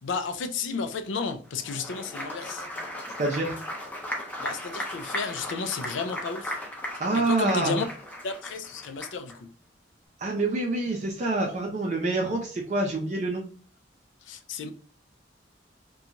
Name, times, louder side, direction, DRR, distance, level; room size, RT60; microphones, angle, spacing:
voice 1, 0.0-2.7 4.4-6.6 7.1-7.8 8.2-9.5 14.2-14.7, left 4 dB, 80° left, 0.4 m, -32 dB
Applause, 1.5-9.4, left 1 dB, 10° left, 0.5 m, -36 dB
voice 2, 3.2-3.6 7.0-7.8 10.2-13.5, right 2 dB, 40° right, 0.5 m, -26 dB
2.9 x 2.3 x 2.5 m
head